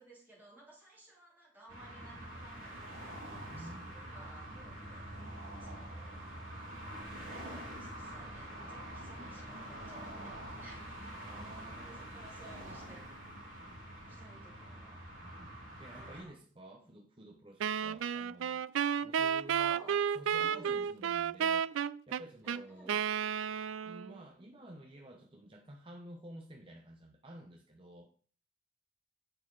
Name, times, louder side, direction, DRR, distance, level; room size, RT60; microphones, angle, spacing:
voice 1, 0.0-5.3 5.6-6.2 6.5-11.0 11.8-13.1 14.1-15.0 15.9-16.4 19.5-20.0 20.4-20.9 22.4-23.0, right 2 dB, 10° right, -6 dB, 3.9 m, -57 dB
sound 1, 1.7-16.2, right 1 dB, 45° right, 4.2 m, -46 dB
voice 2, 3.4-3.9 11.1-12.1 15.2-15.5 15.8-18.6 19.0-19.8 20.1-21.7 22.1-23.0 23.8-28.1, right 1 dB, 25° right, 1 dB, 1.0 m, -52 dB
Wind instrument woodwind instrument, 17.6-24.2, right 8 dB, 90° right, 0.3 m, -32 dB
8.5 x 6.6 x 4.0 m, 0.42 s
head